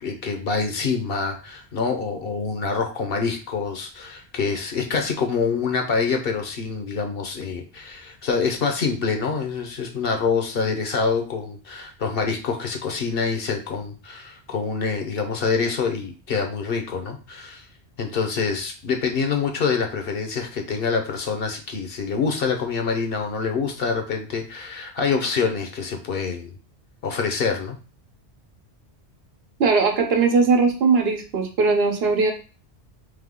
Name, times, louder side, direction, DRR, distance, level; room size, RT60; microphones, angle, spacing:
voice 1, 0.0-17.7 18.0-26.6 27.0-27.8, left 5 dB, 65° left, 5 dB, 0.9 m, -26 dB
voice 2, 29.6-32.3, right 4 dB, 65° right, 3 dB, 1.0 m, -19 dB
3.5 x 3.1 x 3.7 m, 0.35 s
omnidirectional pair, 1.1 m